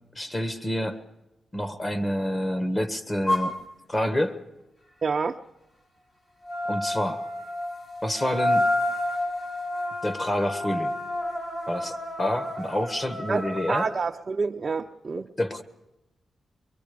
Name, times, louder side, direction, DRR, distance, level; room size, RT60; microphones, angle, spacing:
voice 1, 0.1-1.0 1.5-3.6 3.9-4.4 6.7-7.3 8.0-8.7 10.0-10.9 11.7-13.9 15.2-15.6, left 1 dB, 25° left, 1.6 m, -28 dB
sound 1, 3.3-3.5 6.4-13.9, left 1 dB, 45° left, 6.3 m, -29 dB
voice 2, 5.0-5.4 13.3-15.3, right 4 dB, 40° right, 0.6 m, -28 dB
23.5 x 23.0 x 5.2 m
cardioid pair, 105°, 0 cm